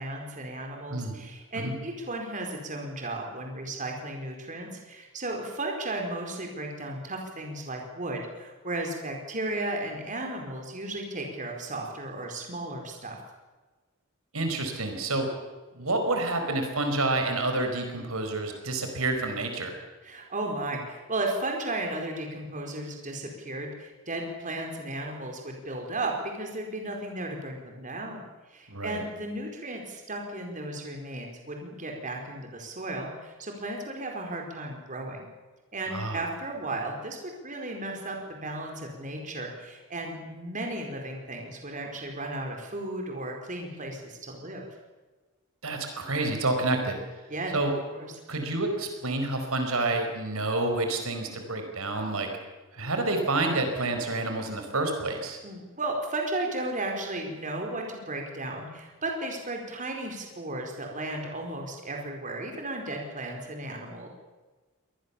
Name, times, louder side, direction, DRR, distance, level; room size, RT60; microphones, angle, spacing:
voice 1, 0.0-13.2 20.0-28.2 28.5-35.2 35.7-44.7 47.3-47.5 47.9-48.1 55.4-64.1, right 2 dB, 35° right, 2 dB, 4.6 m, -35 dB
voice 2, 14.3-15.3 15.7-19.7 28.7-29.0 35.9-36.2 45.6-47.0 47.5-47.7 48.3-52.3 52.7-55.4, right 2 dB, 75° right, 5 dB, 4.7 m, -28 dB
25.5 x 20.0 x 7.2 m, 1.2 s
head